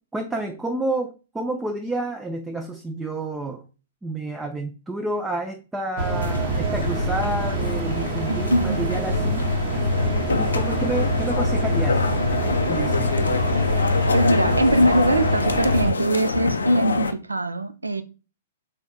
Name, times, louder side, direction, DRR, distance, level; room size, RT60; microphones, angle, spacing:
voice 1, 0.1-3.7 4.0-9.5 10.4-12.0 12.7-13.2, right 2 dB, 10° right, 0.4 m, -29 dB
sound 1, 6.0-15.9, equal, 40° right, 0.8 m, -24 dB
sound 2, 6.2-17.1, left 4 dB, 70° left, 0.4 m, -27 dB
voice 2, 8.3-8.8 13.9-18.0, right 1 dB, 80° right, 0.4 m, -22 dB
4.4 x 3.4 x 2.3 m
figure-of-eight pair, 110°, 0 cm